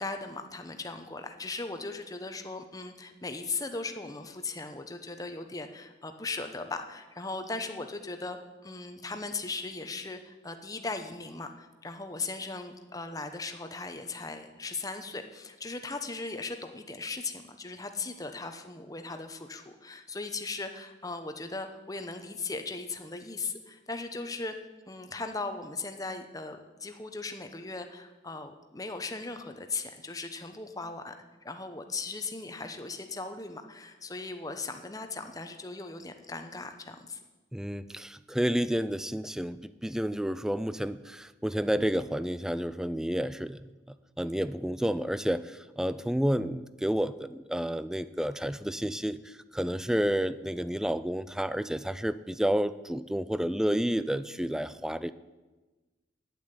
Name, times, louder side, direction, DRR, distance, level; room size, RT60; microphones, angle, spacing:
voice 1, 0.0-8.4 8.6-24.6 24.9-31.1 31.4-37.2, left 3 dB, 20° left, 7 dB, 0.9 m, -38 dB
voice 2, 37.5-43.6 43.9-55.1, equal, 5° right, 15 dB, 0.3 m, -30 dB
8.8 x 8.8 x 9.5 m, 1.2 s
head